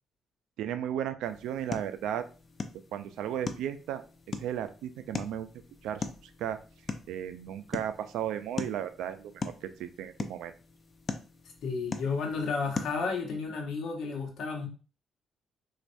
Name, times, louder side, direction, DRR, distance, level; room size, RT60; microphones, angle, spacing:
voice 1, 0.6-2.2 2.9-4.0 4.4-5.5 5.8-6.0 6.4-6.6 7.1-10.5, right 10 dB, 85° right, 10 dB, 0.3 m, -34 dB
sound 1, 1.2-13.2, left 4 dB, 40° left, 0.5 m, -41 dB
voice 2, 11.6-14.7, left 4 dB, 75° left, 2 dB, 0.9 m, -32 dB
4.2 x 2.3 x 2.6 m, 0.36 s
cardioid pair, 90°, 0 cm